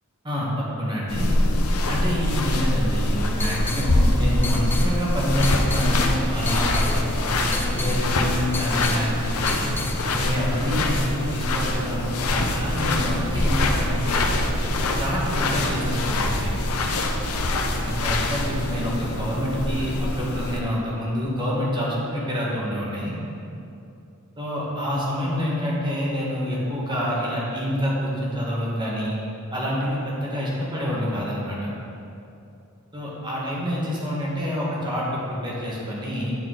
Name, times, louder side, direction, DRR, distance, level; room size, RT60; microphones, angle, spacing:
voice 1, 0.2-1.3 1.9-6.9 7.4-9.8 10.1-14.3 14.6-16.6 17.8-23.2 24.4-29.2 29.5-31.7 32.9-36.3, equal, 20° right, -5 dB, 1.3 m, -27 dB
sound 1, 1.1-20.6, left 1 dB, 90° left, 0.6 m, -24 dB
sound 2, 2.9-10.0, left 3 dB, 10° left, 0.4 m, -34 dB
9.2 x 4.4 x 3.7 m, 2.7 s
head